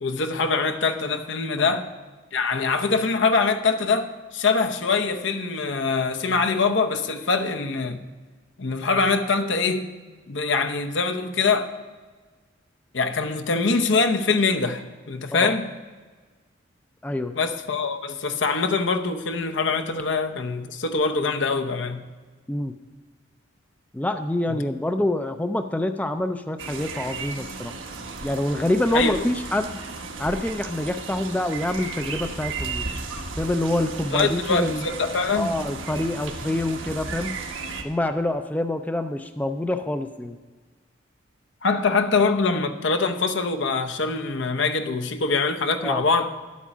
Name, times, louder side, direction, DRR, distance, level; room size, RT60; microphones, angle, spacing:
voice 1, 0.0-1.9 2.3-8.0 8.6-9.9 10.3-11.7 12.9-15.7 17.3-22.0 24.5-24.6 28.9-29.2 34.1-35.5 41.6-46.3, left 4 dB, 70° left, 6 dB, 0.8 m, -23 dB
voice 2, 17.0-17.4 22.5-22.7 23.9-27.7 28.2-29.8 30.2-32.8 33.4-34.9 35.3-37.4 37.8-40.4 45.8-46.0, left 1 dB, 10° left, 8 dB, 0.4 m, -26 dB
sound 1, 26.6-37.8, right 4 dB, 85° right, 1.3 m, -34 dB
11.0 x 8.3 x 6.0 m, 1.4 s
head